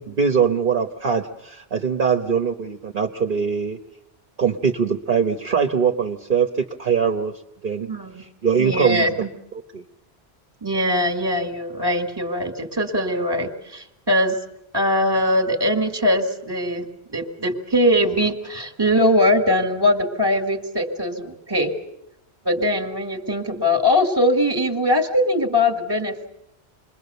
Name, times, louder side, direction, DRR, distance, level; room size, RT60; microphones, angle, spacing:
voice 1, 0.0-3.8 4.4-7.9 8.2-9.2 9.5-9.8, right 6 dB, 55° right, 3 dB, 1.2 m, -22 dB
voice 2, 7.9-8.2 8.6-9.3 10.6-14.4 14.7-16.8 17.1-21.7 22.4-26.3, left 1 dB, 20° right, 6 dB, 2.1 m, -21 dB
27.5 x 22.0 x 6.8 m, 0.83 s
omnidirectional pair, 1.1 m